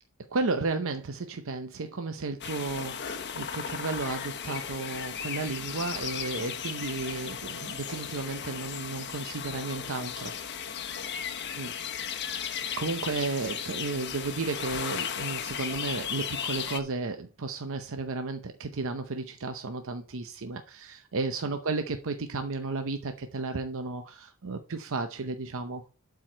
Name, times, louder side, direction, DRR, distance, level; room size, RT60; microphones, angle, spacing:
voice 1, 0.3-10.3 11.5-11.7 12.4-25.9, right 3 dB, 65° right, 0.7 m, -33 dB
sound 1, 2.4-16.8, left 8 dB, 50° left, 0.9 m, -36 dB
11.5 x 4.8 x 4.4 m
head